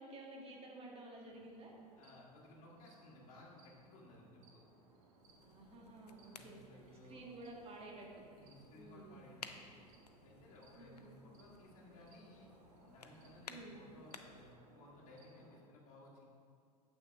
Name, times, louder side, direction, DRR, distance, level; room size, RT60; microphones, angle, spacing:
voice 1, 0.0-1.7 5.4-8.2 8.7-9.2 10.8-11.1 13.5-13.8, right 2 dB, 30° right, -2 dB, 1.8 m, -52 dB
sound 1, 1.2-15.6, right 2 dB, 55° right, 1.3 m, -66 dB
voice 2, 1.9-4.6 6.2-7.2 8.4-9.8 10.2-12.5 12.8-16.3, left 1 dB, 40° left, -4 dB, 1.7 m, -59 dB
sound 2, 5.2-14.5, left 5 dB, 80° left, 0.5 m, -58 dB
8.9 x 7.3 x 3.5 m, 2.2 s
figure-of-eight pair, 80°, 20 cm